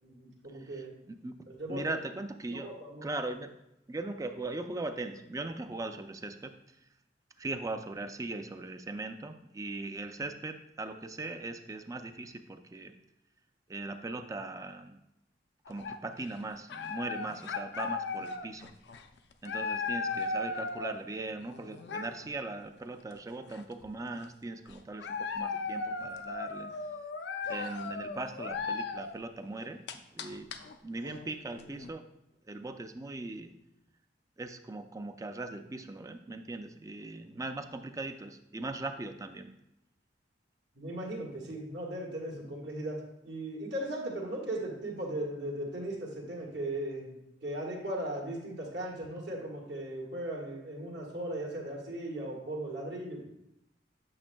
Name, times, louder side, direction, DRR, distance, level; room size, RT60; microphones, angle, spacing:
voice 1, 0.0-0.9 1.5-1.8 2.5-3.1 40.7-53.2, right 1 dB, 75° right, -2 dB, 1.7 m, -38 dB
voice 2, 1.7-2.7 3.0-3.5 3.9-6.5 7.4-12.9 13.7-15.0 15.7-18.7 19.4-26.7 27.5-29.8 30.1-30.5 30.8-32.0 32.5-33.5 34.4-39.5, right 2 dB, 20° right, 8 dB, 0.4 m, -39 dB
sound 1, 15.7-16.3 16.7-21.0 21.4-22.3 23.1-23.2 23.5-24.2 24.7-29.1 29.6-31.9, left 4 dB, 65° left, 0.5 m, -37 dB
8.6 x 6.2 x 2.2 m, 0.84 s
head